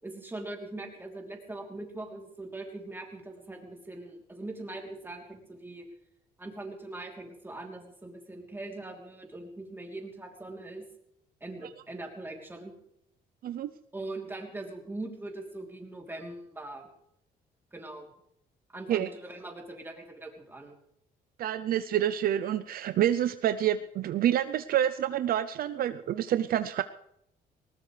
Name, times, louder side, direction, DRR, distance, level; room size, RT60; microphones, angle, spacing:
voice 1, 0.0-5.9 6.4-10.8 11.4-12.7 13.9-16.9 17.7-18.1 18.7-20.7, right 2 dB, 15° right, 1 dB, 3.2 m, -41 dB
voice 2, 21.4-26.8, right 11 dB, 65° right, 11 dB, 0.5 m, -28 dB
19.5 x 19.0 x 3.3 m, 0.76 s
cardioid pair, 110°, 17 cm